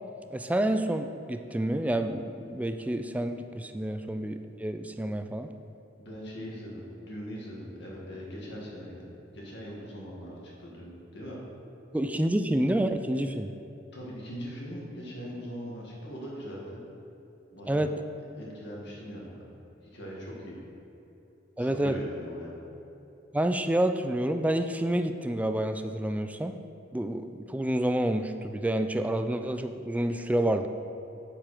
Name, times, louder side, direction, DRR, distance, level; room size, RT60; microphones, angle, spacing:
voice 1, 0.3-5.5 11.9-13.5 17.7-17.9 21.6-22.0 23.3-26.6 26.9-30.7, right 1 dB, 10° right, 8 dB, 0.3 m, -28 dB
voice 2, 6.0-9.1 9.3-11.4 13.9-16.8 17.5-17.9 18.3-19.5 19.9-20.6 21.6-22.6, equal, 65° left, -4 dB, 2.0 m, -41 dB
7.3 x 7.1 x 4.9 m, 3.0 s
head